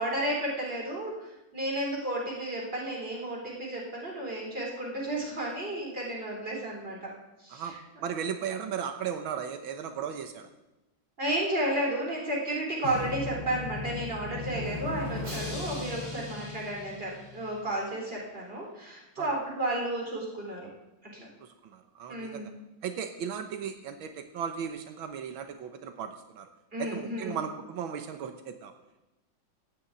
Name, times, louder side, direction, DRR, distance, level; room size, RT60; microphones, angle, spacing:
voice 1, 0.0-7.1 7.4-7.8 11.2-20.7 21.1-21.3 22.1-22.5 26.7-27.4, right 1 dB, 25° right, -2 dB, 4.5 m, -32 dB
voice 2, 7.5-10.5 19.2-19.3 21.4-22.5 22.8-26.5 26.8-28.7, right 7 dB, 90° right, 7 dB, 1.8 m, -36 dB
Drum, 12.8-17.7, left 3 dB, 60° right, 4.3 m, -37 dB
15.0 x 7.2 x 9.2 m, 0.98 s
omnidirectional pair, 2.2 m